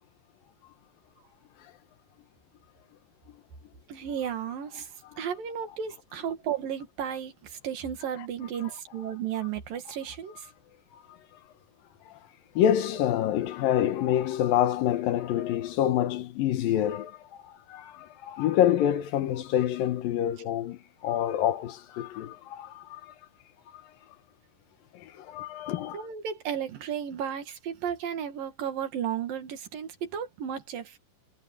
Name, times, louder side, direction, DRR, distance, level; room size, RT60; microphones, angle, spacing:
voice 1, 3.9-4.9 5.2-10.5 25.9-31.0, right 8 dB, 75° right, 3.8 m, -34 dB
voice 2, 12.6-23.1 24.9-26.1, left 11 dB, 80° left, 2.9 m, -27 dB
omnidirectional pair, 4.0 m